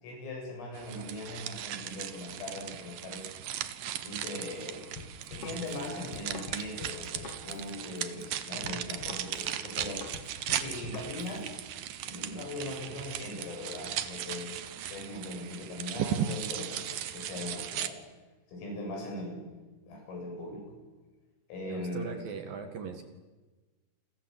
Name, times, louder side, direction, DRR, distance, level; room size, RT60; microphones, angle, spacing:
voice 1, 0.0-3.5 4.0-4.9 5.3-10.3 10.6-11.6 12.0-18.0 18.5-19.5 19.9-20.7 21.5-22.2, left 1 dB, 85° left, 1 dB, 10.0 m, -40 dB
sound 1, 0.7-17.9, right 10 dB, 90° right, 1.9 m, -37 dB
Drum kit, 5.0-11.4, left 4 dB, 40° left, 2.4 m, -46 dB
voice 2, 21.6-23.0, right 6 dB, 55° right, 6 dB, 3.1 m, -39 dB
30.0 x 23.5 x 8.0 m, 1.2 s
omnidirectional pair, 5.8 m